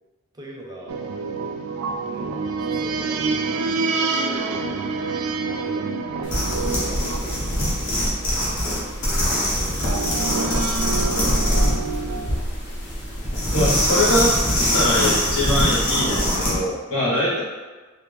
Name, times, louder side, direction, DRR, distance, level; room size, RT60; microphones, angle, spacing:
voice 1, 0.3-1.0 2.0-3.6 3.9-4.7 5.5-5.9 6.2-8.0 8.3-9.9 10.2-12.5, right 1 dB, 20° right, -2 dB, 0.5 m, -42 dB
sound 1, 0.9-8.7 9.8-12.4, right 4 dB, 85° right, 0.3 m, -27 dB
sound 2, 6.2-16.6, equal, 55° left, 1.0 m, -23 dB
voice 2, 13.5-14.3 14.7-17.4, left 1 dB, 85° left, -7 dB, 1.4 m, -22 dB
3.2 x 2.5 x 3.4 m, 1.3 s
head